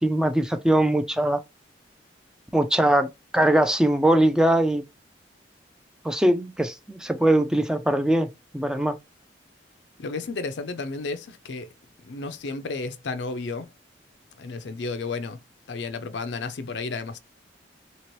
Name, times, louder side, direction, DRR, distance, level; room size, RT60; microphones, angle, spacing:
voice 1, 0.0-1.4 2.5-4.8 6.0-8.3 8.5-9.0, right 1 dB, 5° right, 0.3 m, -21 dB
voice 2, 10.0-11.7 12.0-13.7 14.4-15.4 15.7-17.2, left 3 dB, 75° left, 0.5 m, -32 dB
2.9 x 2.9 x 3.0 m
head